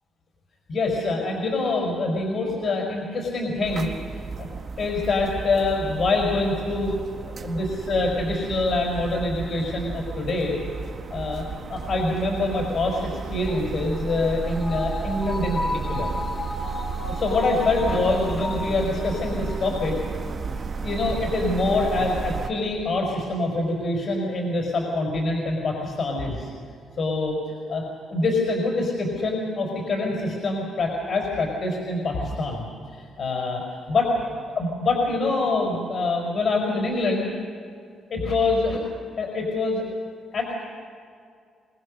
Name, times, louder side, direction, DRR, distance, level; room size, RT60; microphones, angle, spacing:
voice 1, 0.7-4.5 4.8-6.9 7.3-10.5 11.1-11.4 11.7-15.6 15.9-16.1 16.6-16.7 17.1-20.0 20.8-26.5 27.0-27.8 28.1-34.0 34.6-37.3 38.1-38.8 39.2-39.8 40.3-40.5, left 2 dB, 55° left, -1 dB, 5.2 m, -25 dB
sound 1, 3.6-22.5, right 5 dB, 45° right, 1.5 m, -33 dB
sound 2, 13.5-20.1 20.5-20.6, left 2 dB, 25° left, 2.5 m, -34 dB
24.0 x 19.5 x 6.6 m, 2.3 s
cardioid pair, 90°, 0 cm